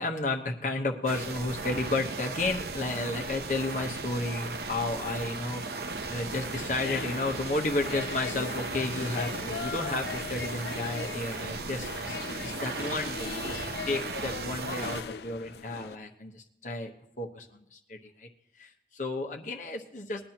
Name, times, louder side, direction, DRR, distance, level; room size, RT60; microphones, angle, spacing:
voice 1, 0.0-5.8 6.1-16.9 17.2-18.3 18.6-20.3, left 2 dB, 45° left, 1 dB, 1.1 m, -32 dB
sound 1, 1.1-15.0, right 3 dB, 60° right, 0.8 m, -36 dB
sound 2, 6.3-16.0, left 6 dB, 65° left, 0.5 m, -39 dB
21.0 x 11.0 x 2.9 m, 0.77 s
head